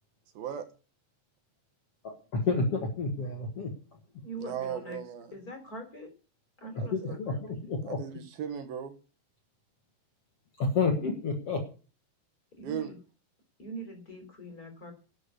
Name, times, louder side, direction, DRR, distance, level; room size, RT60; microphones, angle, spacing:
voice 1, 0.3-0.7 4.4-5.3 6.8-7.2 7.8-9.0 12.6-12.9, right 9 dB, 75° right, 9 dB, 3.1 m, -37 dB
voice 2, 2.0-3.7 6.9-8.0 10.6-11.6, left 4 dB, 50° left, 3 dB, 2.3 m, -30 dB
voice 3, 4.2-5.0 5.3-6.1 6.6-7.4 12.6-13.0 13.6-14.9, right 1 dB, 25° left, 5 dB, 3.4 m, -43 dB
12.0 x 6.8 x 9.6 m, 0.36 s
omnidirectional pair, 4.5 m